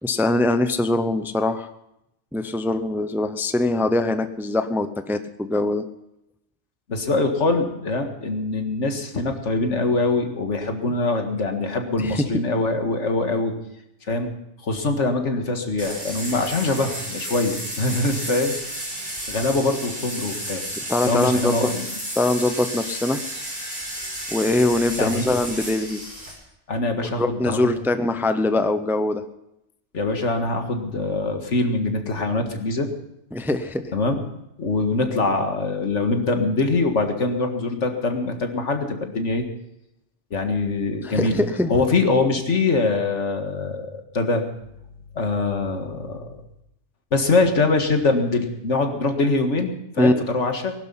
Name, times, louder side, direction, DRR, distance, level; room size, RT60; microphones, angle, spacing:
voice 1, 0.0-1.7 2.3-5.8 12.0-12.3 20.8-21.7 22.2-23.2 24.3-26.0 27.0-29.2 33.3-33.9 41.0-41.9 50.0-50.3, left 2 dB, ahead, 10 dB, 0.6 m, -22 dB
voice 2, 6.9-13.5 14.1-14.3 14.6-18.6 19.3-20.6 21.1-22.0 25.0-25.4 26.7-27.7 29.9-32.9 33.9-39.4 40.3-41.4 41.7-44.4 45.2-46.4 47.1-50.7, left 3 dB, 80° left, 5 dB, 2.1 m, -23 dB
sound 1, 15.8-26.3, right 1 dB, 50° right, 5.7 m, -32 dB
20.0 x 11.5 x 5.7 m, 0.85 s
omnidirectional pair, 1.2 m